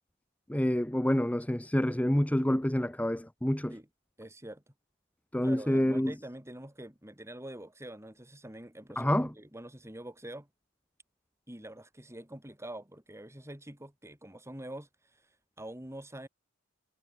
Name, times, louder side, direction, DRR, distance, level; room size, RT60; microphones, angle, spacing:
voice 1, 0.5-3.7 5.3-6.1 9.0-9.3, left 1 dB, 5° left, 0.8 m, -27 dB
voice 2, 4.2-4.6 5.4-10.5 11.5-15.3 15.6-16.3, right 1 dB, 15° right, 4.3 m, -45 dB
head